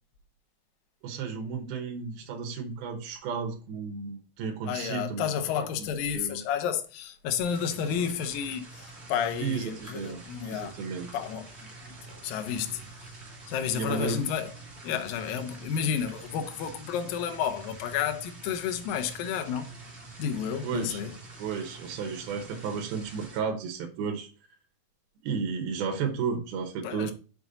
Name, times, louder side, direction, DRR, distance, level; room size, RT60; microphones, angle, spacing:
voice 1, 1.0-5.2 5.8-5.9 6.1-6.4 9.4-10.2 10.5-11.1 13.7-14.2 20.6-21.0 21.4-24.3 25.2-27.1, right 6 dB, 80° right, 2.9 m, -33 dB
voice 2, 4.7-10.8 11.1-11.5 11.8-12.8 13.5-14.5 14.8-19.8 20.2-21.1 26.8-27.1, left 8 dB, 75° left, 2.6 m, -31 dB
sound 1, 7.4-23.4, right 2 dB, 20° right, 2.0 m, -47 dB
6.8 x 5.8 x 3.9 m
omnidirectional pair, 4.3 m